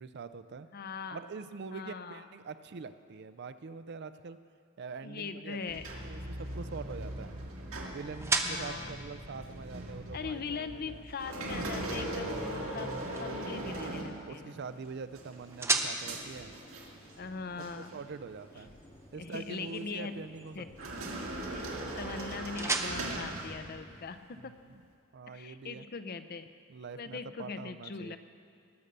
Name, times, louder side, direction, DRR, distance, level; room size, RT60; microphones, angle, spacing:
voice 1, 0.0-0.7 1.1-4.4 4.8-7.4 7.9-11.1 14.2-16.5 17.6-18.7 19.1-21.1 24.4-24.8 25.1-25.9 26.7-28.2, right 5 dB, 55° right, 12 dB, 0.4 m, -44 dB
voice 2, 0.7-1.2 1.7-2.2 5.0-5.8 8.4-8.9 10.1-14.6 17.2-18.0 19.2-20.2 20.6-20.7 21.5-21.7 22.0-24.6 25.3-26.5 26.9-28.2, left 5 dB, 45° left, 10 dB, 0.6 m, -41 dB
sound 1, 5.6-24.4, right 3 dB, 15° right, 0.6 m, -40 dB
sound 2, 5.7-14.7 15.1-17.3 17.6-17.9 18.6-19.5 20.7-24.0, right 1 dB, 70° right, 2.0 m, -40 dB
sound 3, 15.1-23.4, left 1 dB, 25° left, 1.0 m, -56 dB
19.5 x 6.7 x 6.7 m, 2.4 s
head